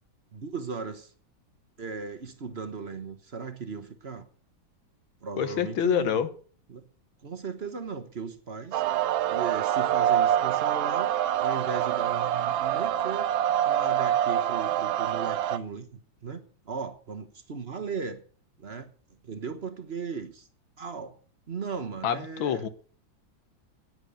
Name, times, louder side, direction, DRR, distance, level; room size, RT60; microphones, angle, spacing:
voice 1, 0.3-1.1 1.8-4.3 5.2-6.2 6.7-6.8 7.2-8.8 9.3-11.1 11.4-13.3 13.6-18.2 18.6-18.9 19.2-20.5 20.8-21.1 21.5-22.6, right 5 dB, 40° right, 1.1 m, -37 dB
voice 2, 5.4-6.3 22.0-22.7, left 9 dB, 85° left, 1.9 m, -26 dB
sound 1, 8.7-15.6, right 11 dB, 80° right, 1.5 m, -25 dB
10.5 x 9.8 x 7.0 m
omnidirectional pair, 2.1 m